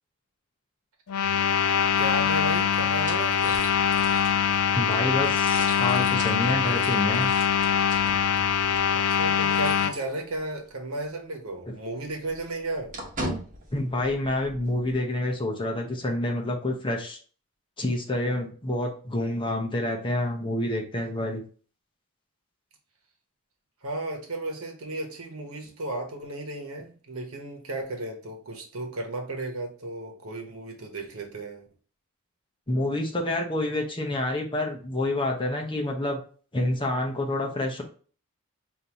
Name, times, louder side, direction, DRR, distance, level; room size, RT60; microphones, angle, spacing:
sound 1, 1.1-9.9, left 8 dB, 90° left, 0.4 m, -23 dB
sound 2, 2.0-10.7 11.0-11.1 11.5-14.9, right 1 dB, 35° right, 1.2 m, -41 dB
voice 1, 2.0-3.7 8.9-13.0 23.8-31.7, right 2 dB, 70° right, 2 dB, 1.1 m, -34 dB
voice 2, 4.7-7.3 13.7-17.2 17.8-21.4 32.7-36.2 36.5-37.8, left 1 dB, 20° left, 1 dB, 0.8 m, -28 dB
5.2 x 2.7 x 2.9 m, 0.41 s
head